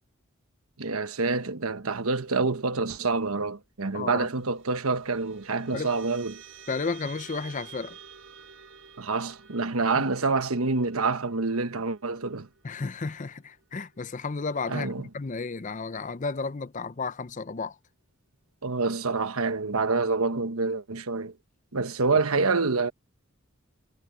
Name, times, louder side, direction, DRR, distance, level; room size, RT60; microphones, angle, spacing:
voice 1, 0.8-6.4 9.0-12.5 14.7-15.1 18.6-21.3 21.7-22.9, right 3 dB, 85° right, 1.2 m, -27 dB
voice 2, 3.9-4.3 5.7-5.9 6.7-8.0 10.0-10.1 12.6-17.8, left 4 dB, 35° left, 0.6 m, -33 dB
sound 1, 4.0-14.8, right 7 dB, 70° right, 5.8 m, -51 dB
head